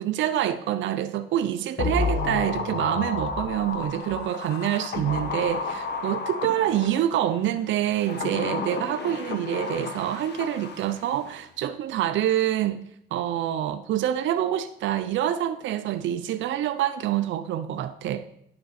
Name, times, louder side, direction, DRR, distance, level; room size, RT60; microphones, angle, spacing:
voice 1, 0.0-12.8 13.1-18.2, right 11 dB, 75° right, 0.5 m, -26 dB
sound 1, 1.8-7.2 7.9-11.1 11.4-11.5, left 4 dB, 60° left, 1.3 m, -31 dB
9.6 x 6.4 x 4.2 m
cardioid pair, 90°, 20 cm